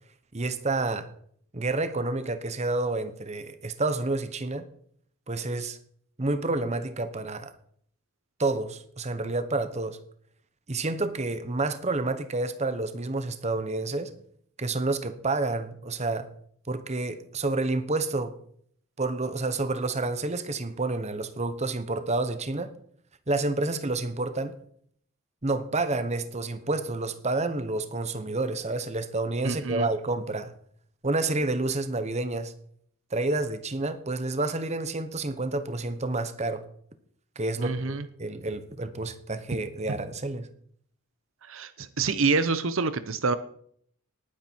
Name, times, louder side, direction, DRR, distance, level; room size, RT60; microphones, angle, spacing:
voice 1, 0.3-1.1 1.5-4.6 5.3-5.8 6.2-7.5 8.4-10.0 10.7-14.1 14.6-16.3 16.7-18.3 19.0-22.7 23.3-24.5 25.4-30.5 31.0-32.5 33.1-36.6 37.4-40.5, right 2 dB, 30° right, 1.0 m, -29 dB
voice 2, 29.4-29.9 37.6-38.1 41.4-43.4, right 4 dB, 65° right, 0.8 m, -27 dB
19.0 x 9.6 x 4.6 m
head